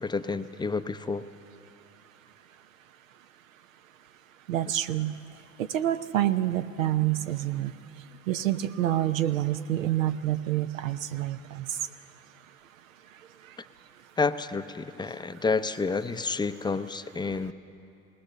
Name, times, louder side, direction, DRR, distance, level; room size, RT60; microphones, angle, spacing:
voice 1, 0.0-1.3 14.2-17.5, left 4 dB, 10° left, 10 dB, 0.6 m, -29 dB
voice 2, 4.5-5.1 5.6-7.7 8.3-11.7, right 13 dB, 85° right, 10 dB, 0.9 m, -27 dB
20.0 x 19.0 x 6.8 m, 2.8 s
hypercardioid pair, 90°, 39 cm